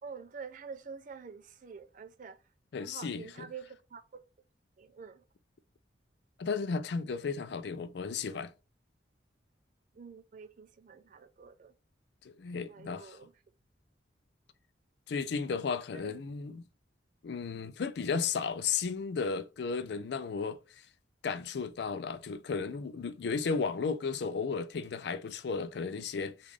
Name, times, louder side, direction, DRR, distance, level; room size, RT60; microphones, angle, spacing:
voice 1, 0.0-2.4 2.8-4.2 4.8-5.2 9.9-11.7 12.7-13.3 15.9-16.1, right 5 dB, 45° right, 0.4 m, -47 dB
voice 2, 2.7-3.2 6.4-8.5 12.4-13.2 15.1-16.6 17.2-20.6 21.2-26.5, left 5 dB, 60° left, 0.4 m, -34 dB
3.6 x 2.4 x 3.1 m
head